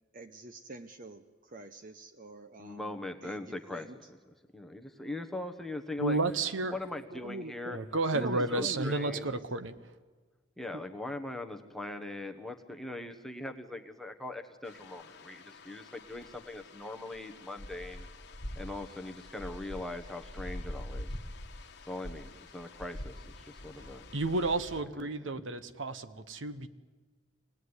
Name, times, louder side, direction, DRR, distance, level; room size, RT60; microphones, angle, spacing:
voice 1, 0.1-2.9 3.2-3.9 7.1-7.8 8.1-9.2 10.7-10.8, right 2 dB, 40° right, 8 dB, 0.8 m, -43 dB
voice 2, 2.6-4.2 4.5-6.2 6.7-7.8 8.2-9.3 10.6-18.1 18.6-21.2 21.8-24.1 24.9-25.4, left 2 dB, ahead, 4 dB, 1.2 m, -41 dB
voice 3, 6.0-6.8 7.7-9.7 24.1-26.7, right 2 dB, 70° right, 11 dB, 1.1 m, -31 dB
sound 1, 14.6-24.8, left 1 dB, 55° left, 1.5 m, -45 dB
26.0 x 18.5 x 9.7 m, 1.4 s
head